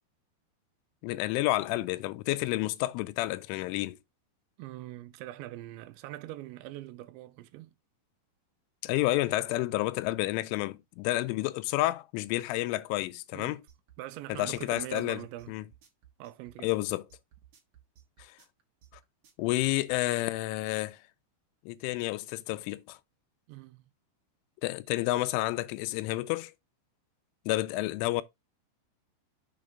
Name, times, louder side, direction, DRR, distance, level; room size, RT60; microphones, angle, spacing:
voice 1, 1.0-4.0 8.8-13.6 14.3-15.2 15.5-15.6 16.6-17.0 18.2-18.4 19.4-21.0 21.7-23.0 24.6-26.5 27.5-28.2, left 17 dB, 90° left, 3.1 m, -30 dB
voice 2, 4.6-7.7 13.3-13.6 14.0-15.6 16.2-16.7 23.5-23.9, right 15 dB, 85° right, 2.8 m, -43 dB
sound 1, 13.7-20.3, right 10 dB, 60° right, 2.4 m, -58 dB
7.1 x 5.1 x 3.6 m
omnidirectional pair, 5.4 m